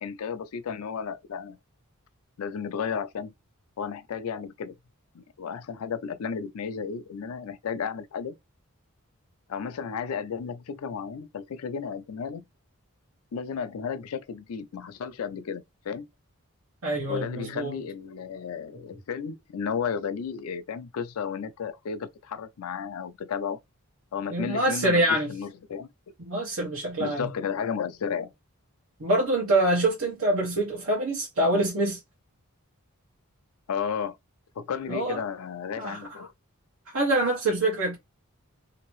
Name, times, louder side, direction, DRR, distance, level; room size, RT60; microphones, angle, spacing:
voice 1, 0.0-1.6 2.4-3.3 3.8-4.7 5.1-8.3 9.5-12.4 13.3-16.1 17.1-23.6 24.1-25.9 27.0-28.3 33.7-34.2 34.6-36.3, left 6 dB, 80° left, 0.4 m, -33 dB
voice 2, 16.8-17.7 24.3-25.3 26.2-27.3 29.0-32.0 34.9-35.2 35.8-36.1 36.9-38.0, right 1 dB, 70° right, 1.1 m, -25 dB
2.9 x 2.6 x 3.0 m
head